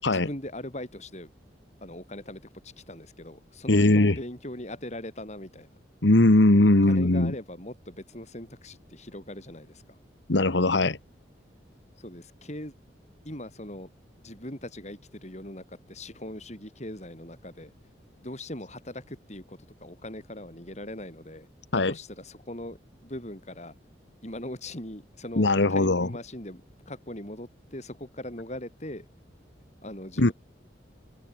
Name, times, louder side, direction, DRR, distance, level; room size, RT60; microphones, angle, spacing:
voice 1, 0.1-1.3 1.8-5.7 6.8-10.0 12.0-12.7 13.2-13.9 14.2-17.7 18.2-21.5 21.7-22.8 23.0-23.8 24.2-26.6 26.9-29.1 29.8-30.3, left 1 dB, 40° left, 7.8 m, -40 dB
voice 2, 3.7-4.2 6.0-7.3 10.3-11.0 21.7-21.9 25.4-26.1 30.2-30.3, left 2 dB, 80° left, 1.5 m, -20 dB
open air
head